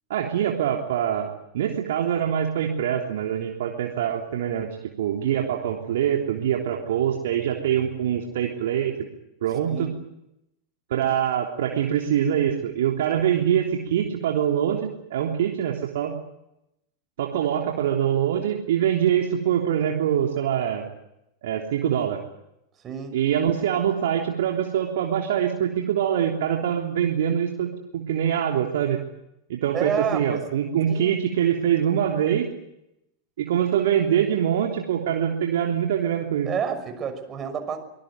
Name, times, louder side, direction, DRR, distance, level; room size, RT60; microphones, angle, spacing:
voice 1, 0.1-4.7 5.0-8.9 9.4-9.9 10.9-16.1 17.2-20.8 21.4-22.2 23.1-29.0 29.5-32.5 33.4-36.5, right 9 dB, 55° right, 1 dB, 3.3 m, -24 dB
voice 2, 22.8-23.2 29.7-30.4 30.9-31.2 36.5-37.8, right 7 dB, 25° right, 6 dB, 6.0 m, -29 dB
24.5 x 20.5 x 9.4 m, 0.83 s
figure-of-eight pair, 90°, 0 cm